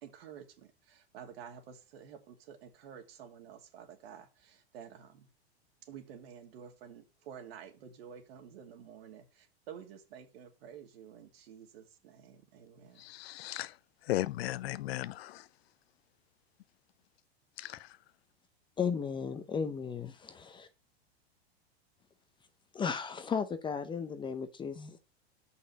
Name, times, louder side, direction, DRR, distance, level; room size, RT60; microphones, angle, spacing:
voice 1, 0.0-5.3 5.8-13.0, right 8 dB, 65° right, 2.6 m, -51 dB
voice 2, 13.0-13.7 14.1-15.4 17.6-17.8, left 15 dB, 70° left, 0.6 m, -35 dB
voice 3, 18.8-20.7 22.7-25.0, left 6 dB, 15° left, 0.7 m, -35 dB
6.5 x 5.6 x 7.2 m
supercardioid pair, 135°, 32 cm